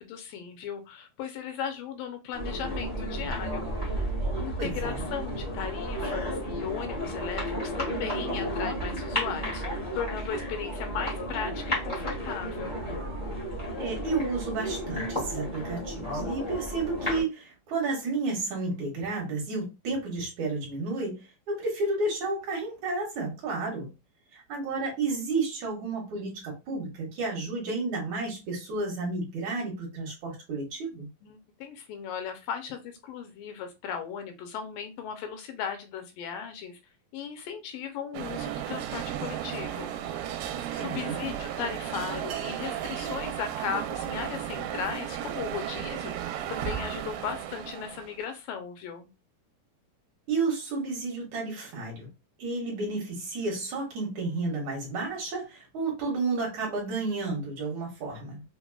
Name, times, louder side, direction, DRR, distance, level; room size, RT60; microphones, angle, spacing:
voice 1, 0.0-3.7 4.4-12.8 31.2-36.8 37.1-39.9 40.7-49.1, left 7 dB, 80° left, 2.2 m, -37 dB
sound 1, 2.3-17.2, equal, 65° left, 0.4 m, -32 dB
voice 2, 4.6-5.0 13.8-23.9 24.3-31.1 40.8-41.2 50.3-52.1 52.4-58.4, right 3 dB, 70° right, 2.1 m, -31 dB
sound 2, 38.1-48.2, right 10 dB, 85° right, 2.2 m, -34 dB
5.9 x 2.1 x 2.3 m
omnidirectional pair, 4.1 m